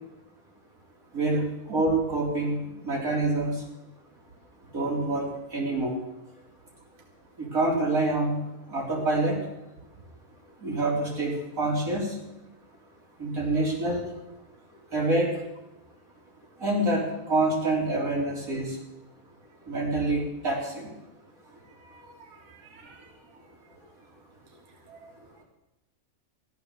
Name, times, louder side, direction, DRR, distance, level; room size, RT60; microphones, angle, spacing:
voice 1, 1.1-3.5 4.7-6.0 7.4-8.4 8.7-9.4 10.6-12.1 13.2-14.0 14.9-15.3 16.6-18.8 19.7-20.9, right 2 dB, 80° right, -3 dB, 4.2 m, -26 dB
voice 2, 21.6-23.1 24.9-25.1, right 4 dB, 60° right, 3 dB, 1.5 m, -53 dB
14.5 x 11.5 x 6.9 m, 0.95 s
omnidirectional pair, 1.5 m